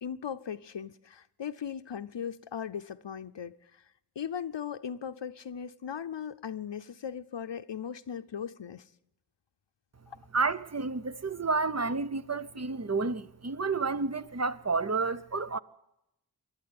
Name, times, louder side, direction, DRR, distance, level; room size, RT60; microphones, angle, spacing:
voice 1, 0.0-3.8 4.2-8.8 10.1-10.2, left 8 dB, 85° left, 0.7 m, -38 dB
voice 2, 10.3-15.6, right 4 dB, 40° right, 0.7 m, -30 dB
26.5 x 11.5 x 9.4 m
wide cardioid pair, 55°, 42 cm